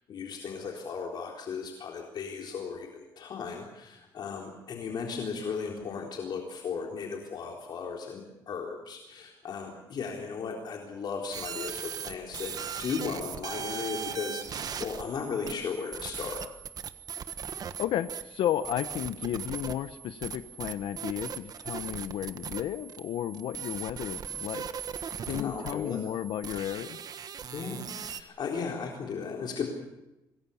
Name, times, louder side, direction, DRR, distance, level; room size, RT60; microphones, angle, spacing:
voice 1, 0.1-16.4 25.3-26.0 27.5-29.7, left 5 dB, 55° left, 0 dB, 3.9 m, -36 dB
sound 1, 11.3-28.2, right 8 dB, 45° right, 1.5 m, -39 dB
voice 2, 17.8-24.7 25.3-27.0, left 11 dB, 80° left, 11 dB, 0.9 m, -33 dB
26.5 x 21.0 x 7.2 m, 0.95 s
cardioid pair, 120°, 9 cm